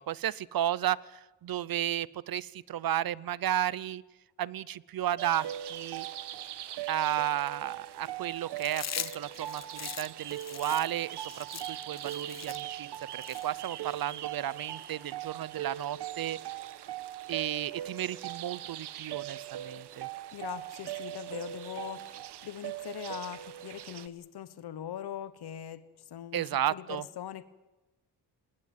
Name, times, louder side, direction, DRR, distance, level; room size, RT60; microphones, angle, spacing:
voice 1, 0.0-4.0 4.4-6.1 6.9-16.4 17.3-20.1 26.3-27.0, right 11 dB, 60° right, 21 dB, 0.7 m, -33 dB
sound 1, 5.2-24.1, right 12 dB, 85° right, 1.2 m, -40 dB
Chewing mastication, 8.6-14.0, left 8 dB, 40° left, 0.9 m, -41 dB
voice 2, 20.3-22.1 22.4-27.4, left 10 dB, 70° left, 14 dB, 1.2 m, -41 dB
19.5 x 19.5 x 9.3 m, 1.1 s
cardioid pair, 125°, 40 cm